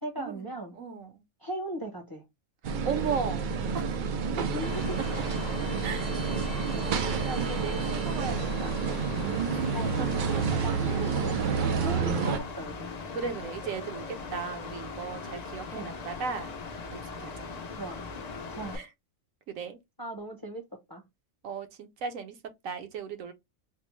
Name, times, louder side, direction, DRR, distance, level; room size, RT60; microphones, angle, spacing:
voice 1, 0.0-0.7 1.4-2.2 4.5-4.9 9.7-9.9 10.3-12.9 15.7-15.9 17.8-18.0 18.5-18.8 20.0-20.6 20.9-21.0, right 1 dB, 20° left, 0.6 m, -37 dB
voice 2, 0.7-1.2 2.6-3.5 3.7-4.0 5.1-5.2 5.8-8.8 9.5-9.7 10.2-10.3 12.0-12.4 13.1-17.5 18.7-18.9 19.5-19.8 21.4-22.4 22.6-23.3, right 6 dB, 75° right, 1.1 m, -37 dB
sound 1, 2.6-12.4, right 5 dB, 90° right, 0.4 m, -29 dB
Mechanical fan, 4.6-18.8, left 4 dB, 65° left, 0.4 m, -40 dB
4.3 x 2.1 x 3.0 m
omnidirectional pair, 1.4 m